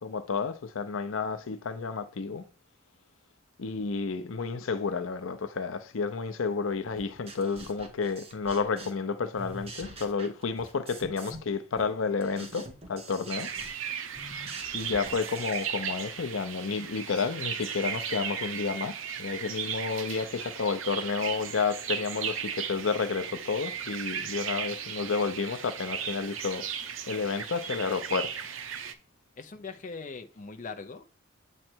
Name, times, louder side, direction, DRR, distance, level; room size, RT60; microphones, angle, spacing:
voice 1, 0.0-2.4 3.6-13.5 14.7-26.7 27.1-28.5, left 5 dB, 85° left, 0.6 m, -31 dB
sound 1, 7.0-9.1 9.3-11.5 11.8-16.1, right 1 dB, 30° right, 1.2 m, -45 dB
sound 2, 13.3-28.9, right 8 dB, 80° right, 0.7 m, -36 dB
voice 2, 29.4-31.1, left 4 dB, 40° left, 0.6 m, -41 dB
7.6 x 3.2 x 4.4 m
head